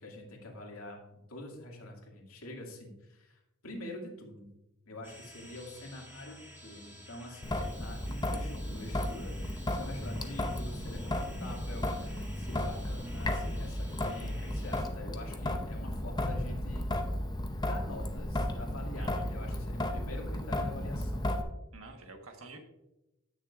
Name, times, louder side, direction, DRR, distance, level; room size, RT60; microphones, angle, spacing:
voice 1, 0.0-4.5 4.9-16.9 17.6-21.3, left 1 dB, 80° left, 0 dB, 2.4 m, -45 dB
sound 1, 5.0-14.8, equal, 10° right, 1.6 m, -52 dB
Traffic noise roadway noise / Drip / Trickle dribble, 7.4-21.4, left 1 dB, 20° left, 0.7 m, -34 dB
voice 2, 19.0-19.3 21.7-22.6, right 3 dB, 70° right, 4 dB, 1.4 m, -49 dB
16.5 x 6.6 x 2.5 m, 0.92 s
head